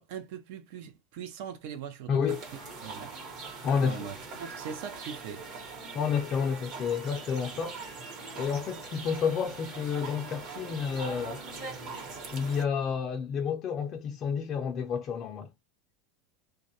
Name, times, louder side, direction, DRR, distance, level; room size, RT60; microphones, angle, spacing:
voice 1, 0.0-2.4 2.8-3.1 3.8-5.5, right 8 dB, 65° right, 0.6 m, -41 dB
voice 2, 2.1-2.4 3.6-4.1 5.9-8.1 8.4-11.4 12.3-15.5, left 6 dB, 40° left, 0.4 m, -30 dB
sound 1, 2.3-12.6, right 4 dB, 45° right, 1.0 m, -42 dB
2.3 x 2.0 x 2.7 m
supercardioid pair, 135°, 0 cm